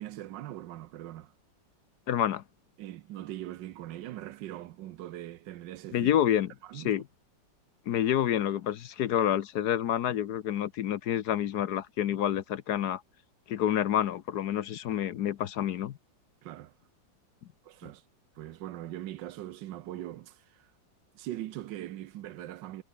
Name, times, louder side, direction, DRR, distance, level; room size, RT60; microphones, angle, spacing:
voice 1, 0.0-1.3 2.8-6.1 6.6-6.9 16.4-16.7 17.6-18.0 18.4-20.7 21.1-22.8, right 13 dB, 75° right, 1.4 m, -41 dB
voice 2, 2.1-2.4 5.9-7.0 7.9-13.0 13.5-16.0, left 10 dB, 65° left, 1.2 m, -28 dB
omnidirectional pair, 2.0 m